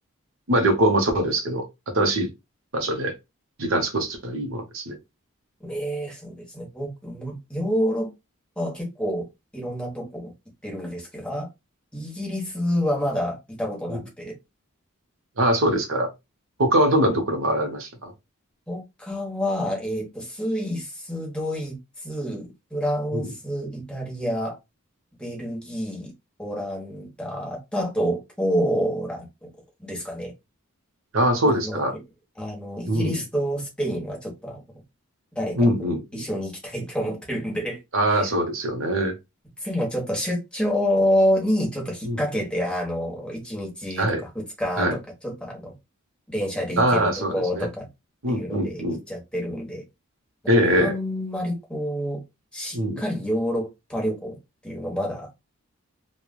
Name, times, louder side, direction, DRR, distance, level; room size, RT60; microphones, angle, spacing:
voice 1, 0.5-1.6 1.9-2.3 2.7-3.1 3.6-5.0 13.9-14.0 15.4-16.1 16.6-18.1 23.1-23.3 31.1-31.9 32.9-33.2 35.6-36.3 37.9-39.2 42.0-42.2 44.0-44.2 44.8-45.0 46.8-47.7 48.2-49.0 50.5-51.0 52.7-53.0, right 1 dB, 70° right, 0.9 m, -22 dB
voice 2, 5.6-8.1 8.6-9.3 9.5-10.3 10.6-11.5 11.9-14.3 18.7-24.6 25.2-26.1 26.4-29.5 29.8-30.3 31.4-31.8 32.4-34.6 35.3-37.8 38.1-38.3 39.6-45.7 46.3-47.9 48.3-48.8 49.1-49.8 50.7-52.2 52.5-54.4 54.6-55.3, equal, 5° left, 1.0 m, -28 dB
3.1 x 2.3 x 2.2 m
head